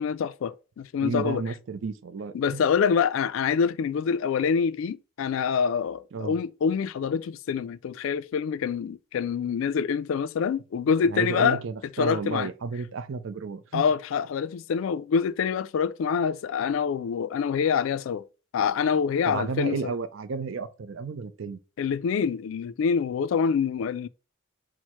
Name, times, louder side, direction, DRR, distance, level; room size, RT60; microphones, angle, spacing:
voice 1, 0.0-1.4 2.3-11.6 12.0-12.5 13.7-18.2 18.5-19.8 21.8-24.1, left 6 dB, 70° left, 0.3 m, -26 dB
voice 2, 1.0-2.6 6.1-6.4 11.1-13.8 19.3-21.6, right 4 dB, 65° right, 0.4 m, -32 dB
4.5 x 2.0 x 4.3 m
head